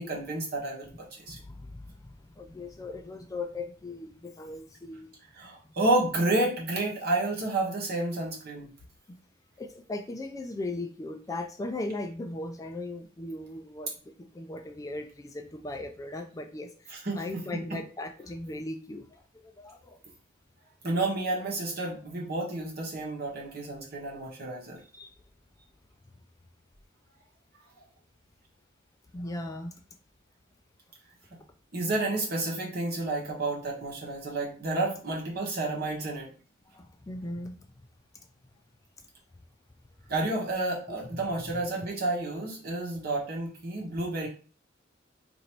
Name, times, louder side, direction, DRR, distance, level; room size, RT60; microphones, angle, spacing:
voice 1, 0.0-1.4 5.3-8.7 16.9-17.2 20.8-24.8 31.3-31.4 31.7-36.3 40.1-44.3, right 2 dB, 55° right, -2 dB, 1.3 m, -30 dB
voice 2, 1.3-5.1 5.6-5.8 9.1-9.2 9.6-20.0 24.8-25.1 29.1-29.8 36.7-37.9 40.9-41.0 41.4-41.6, left 2 dB, 20° left, 6 dB, 0.3 m, -38 dB
3.0 x 2.6 x 4.4 m, 0.39 s
head